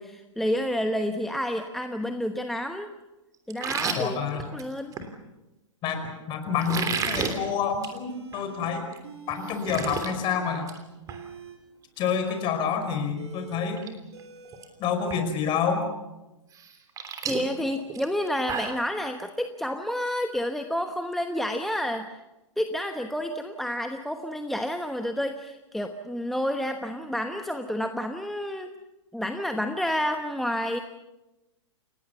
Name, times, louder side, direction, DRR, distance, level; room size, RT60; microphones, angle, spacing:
voice 1, 0.0-2.9 3.5-4.2 4.5-4.9 17.3-22.1 22.6-28.7 29.1-30.8, equal, ahead, 6 dB, 1.1 m, -29 dB
sound 1, 3.5-5.1 6.6-7.3 7.7-8.0 8.3-8.4 8.9-9.0 9.3-10.1 10.5-10.8 11.1-11.2 13.1-13.2 13.6-13.9 14.2-14.6 15.1-15.2 16.5-18.8, right 6 dB, 20° right, 3.2 m, -32 dB
voice 2, 4.0-4.4 5.8-8.8 9.3-10.7 12.0-13.9 14.8-15.9, left 6 dB, 30° left, 7 dB, 5.2 m, -28 dB
Square Scale, 8.1-8.6 9.0-9.6 9.8-10.6 11.0-15.6, right 4 dB, 60° right, 6.3 m, -45 dB
29.5 x 17.5 x 7.0 m, 1.0 s
hypercardioid pair, 120°, 16 cm